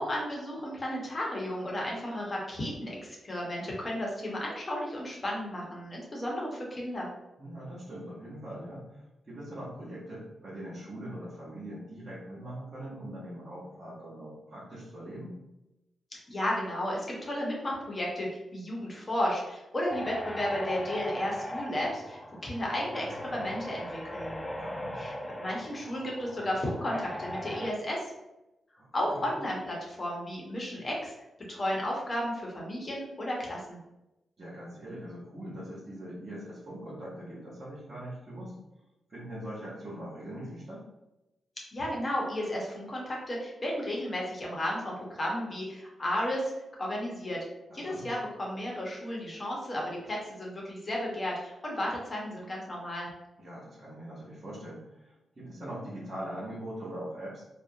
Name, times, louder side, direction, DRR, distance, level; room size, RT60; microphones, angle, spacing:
voice 1, 0.0-7.1 16.1-24.4 25.0-28.1 28.9-31.1 31.5-33.8 41.7-46.5 46.8-47.4 47.7-53.1, left 1 dB, 40° left, -3 dB, 0.9 m, -33 dB
voice 2, 7.4-15.4 24.6-25.0 28.8-29.2 30.7-30.8 34.4-38.5 39.1-40.8 47.7-48.1 53.4-57.4, right 1 dB, 50° right, -8 dB, 1.0 m, -42 dB
sound 1, 19.9-27.7, left 1 dB, 15° left, 0.3 m, -39 dB
2.7 x 2.1 x 2.6 m, 0.95 s
supercardioid pair, 50°, 0 cm